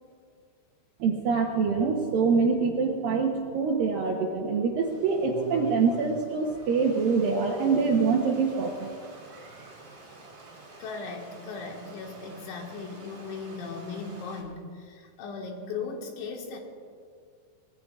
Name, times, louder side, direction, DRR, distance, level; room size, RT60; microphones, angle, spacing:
voice 1, 1.0-8.9 9.3-9.7, right 5 dB, 75° right, 0 dB, 2.1 m, -25 dB
Stream, 4.8-14.4, right 3 dB, 35° right, 4.8 m, -46 dB
voice 2, 10.8-16.6, left 4 dB, 80° left, 1 dB, 4.0 m, -37 dB
25.0 x 20.0 x 2.5 m, 2.2 s
omnidirectional pair, 5.3 m